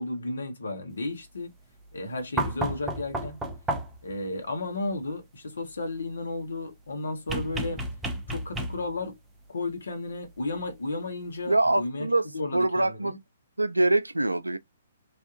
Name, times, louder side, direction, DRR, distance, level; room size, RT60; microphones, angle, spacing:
voice 1, 0.0-1.5 1.9-3.4 4.0-7.8 8.3-9.1 9.5-13.2, left 2 dB, 65° left, 1.0 m, -33 dB
sound 1, 2.4-4.1 7.3-9.0 10.6-10.7, right 1 dB, 10° right, 0.5 m, -32 dB
voice 2, 11.5-12.3 12.5-13.1 13.6-14.6, right 2 dB, 80° right, 0.3 m, -24 dB
3.4 x 2.2 x 2.6 m
figure-of-eight pair, 125°, 0 cm